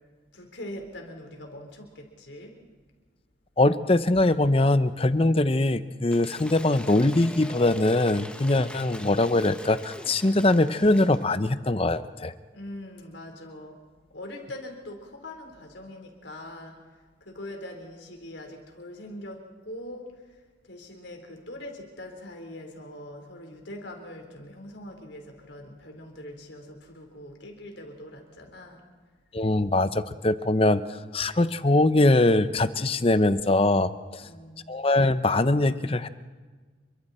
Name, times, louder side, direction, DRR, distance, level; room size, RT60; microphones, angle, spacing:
voice 1, 0.3-2.6 12.5-13.8 14.1-16.8 17.2-20.2 20.6-28.8 34.2-34.7, left 1 dB, 70° left, 2 dB, 4.2 m, -42 dB
voice 2, 3.6-12.3 29.3-30.8 31.1-34.2 34.7-36.1, left 2 dB, 30° left, 13 dB, 0.7 m, -22 dB
Cheering / Applause / Crowd, 6.1-11.3, left 1 dB, 5° left, 1.3 m, -43 dB
29.0 x 23.5 x 4.4 m, 1.4 s
head